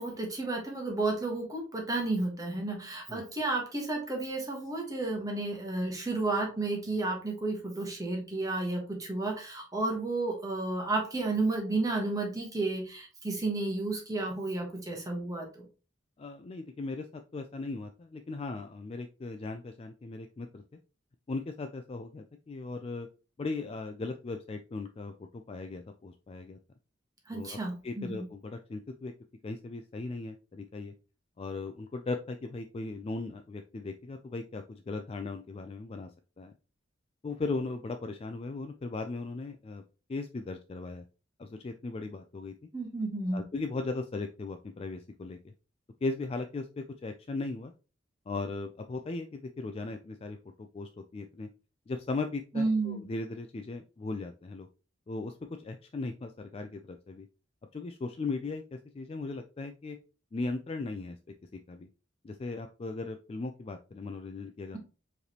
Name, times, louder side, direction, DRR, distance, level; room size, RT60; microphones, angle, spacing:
voice 1, 0.0-15.6 27.3-28.3 42.7-43.4 52.5-53.0, right 2 dB, 20° right, 0 dB, 1.3 m, -32 dB
voice 2, 16.2-20.6 21.3-23.1 23.4-26.6 27.3-27.6 27.8-29.1 29.4-30.9 31.4-36.1 36.4-36.5 37.2-39.8 40.1-41.0 41.4-42.5 43.3-45.5 46.0-47.7 48.3-51.5 51.9-54.7 55.1-57.3 57.7-60.0 60.3-61.2 61.7-61.9 62.2-64.8, left 3 dB, 30° left, 6 dB, 0.3 m, -38 dB
4.8 x 3.3 x 2.9 m, 0.34 s
head